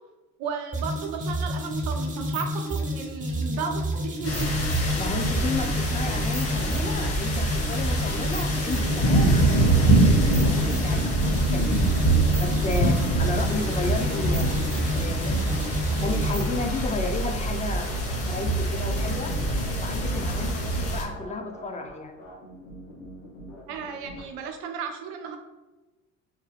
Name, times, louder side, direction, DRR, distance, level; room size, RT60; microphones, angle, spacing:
voice 1, 0.4-4.5 23.7-25.4, right 6 dB, 70° right, 4 dB, 0.8 m, -34 dB
sound 1, 0.7-16.6, equal, 20° right, 0.7 m, -30 dB
sound 2, 4.2-21.0, right 1 dB, 35° left, 1.1 m, -24 dB
voice 2, 4.9-11.9 12.4-14.6 14.9-17.9 18.3-19.3 19.8-22.2, left 3 dB, 20° left, 4 dB, 0.6 m, -33 dB
sound 3, 9.5-24.2, left 1 dB, 80° left, 1.2 m, -45 dB
3.6 x 2.2 x 3.4 m, 1.1 s
hypercardioid pair, 65°, 40 cm